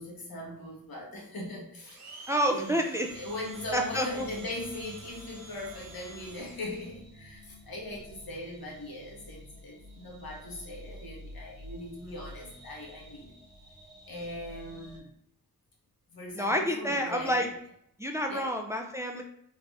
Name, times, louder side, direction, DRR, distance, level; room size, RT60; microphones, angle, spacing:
voice 1, 0.0-2.8 3.1-13.3 14.0-15.1 16.1-17.5 18.3-18.5, left 1 dB, 80° left, -2 dB, 1.1 m, -40 dB
Domestic sounds home sounds, 1.9-6.9, right 3 dB, 50° right, 0.7 m, -50 dB
voice 2, 2.3-3.1 3.7-4.2 12.0-12.2 16.3-17.5 18.0-19.2, equal, 10° right, 3 dB, 0.4 m, -29 dB
sound 1, 3.0-15.0, equal, 85° right, 0.9 m, -50 dB
3.3 x 2.5 x 3.3 m, 0.70 s
cardioid pair, 65°, 35 cm